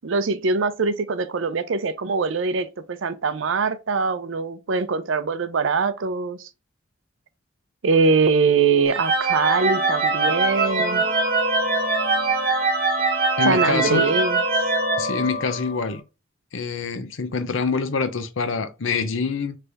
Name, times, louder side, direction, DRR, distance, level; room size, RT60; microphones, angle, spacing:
voice 1, 0.0-6.5 7.8-11.0 13.5-14.4, right 4 dB, 70° right, 0.5 m, -22 dB
sound 1, 8.9-15.9, right 3 dB, 50° right, 1.2 m, -22 dB
voice 2, 13.4-14.1 15.0-16.0 16.5-19.6, left 5 dB, 75° left, 0.7 m, -25 dB
3.4 x 3.3 x 3.9 m
head